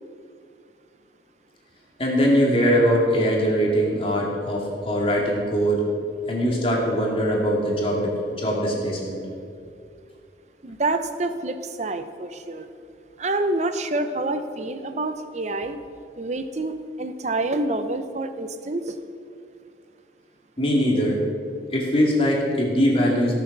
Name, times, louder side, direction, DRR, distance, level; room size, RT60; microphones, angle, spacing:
voice 1, 2.0-5.8 6.3-9.2 20.6-21.2 21.7-23.3, equal, 30° left, -2 dB, 2.4 m, -21 dB
voice 2, 10.6-12.7 13.2-15.8 16.2-19.0, right 2 dB, 40° right, 9 dB, 0.7 m, -27 dB
16.5 x 7.1 x 6.0 m, 2.3 s
head